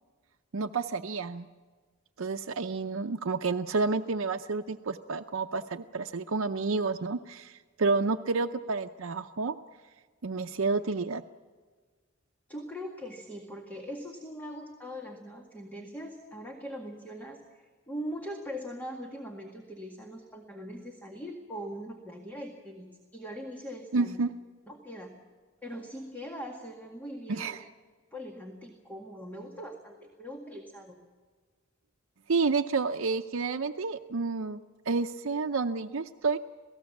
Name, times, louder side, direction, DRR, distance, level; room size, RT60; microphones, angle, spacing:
voice 1, 0.5-1.5 2.2-9.6 10.2-11.2 23.9-24.3 27.3-27.6 32.3-34.6 34.9-36.4, right 4 dB, 75° right, 7 dB, 0.6 m, -30 dB
voice 2, 12.5-24.2 24.7-25.1 25.6-27.6 28.1-31.0, equal, 10° left, 1 dB, 1.9 m, -41 dB
27.5 x 18.0 x 7.2 m, 1.5 s
head